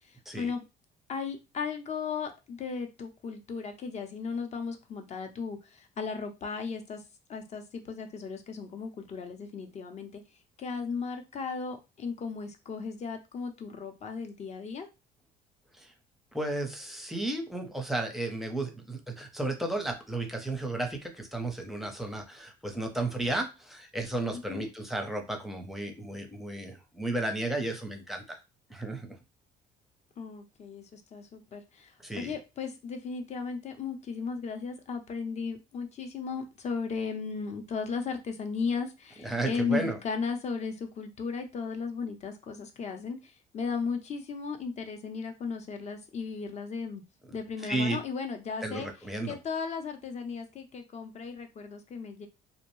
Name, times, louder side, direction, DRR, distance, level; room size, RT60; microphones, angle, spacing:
voice 1, 0.1-0.6 1.1-7.0 7.3-10.2 10.6-14.9 24.3-24.7 30.2-47.0 47.3-48.9 49.2-52.3, left 5 dB, 40° left, 6 dB, 0.6 m, -36 dB
voice 2, 16.3-28.4 28.7-29.2 32.0-32.4 39.2-40.0 47.6-48.0 48.6-49.4, right 2 dB, ahead, 3 dB, 0.6 m, -33 dB
2.6 x 2.1 x 3.1 m, 0.26 s
cardioid pair, 110°, 17 cm